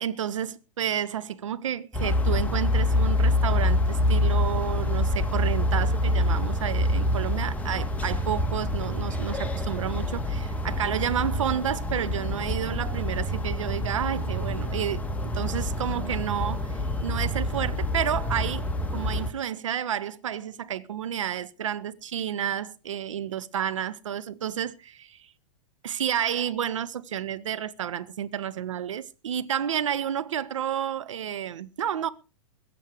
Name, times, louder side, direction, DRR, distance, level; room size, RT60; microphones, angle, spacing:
voice 1, 0.0-15.1 15.3-25.3 25.8-32.1, right 9 dB, 65° right, 1.2 m, -30 dB
sound 1, 1.9-19.3, left 1 dB, 10° left, 2.0 m, -26 dB
21.5 x 7.7 x 5.0 m
figure-of-eight pair, 105°, 18 cm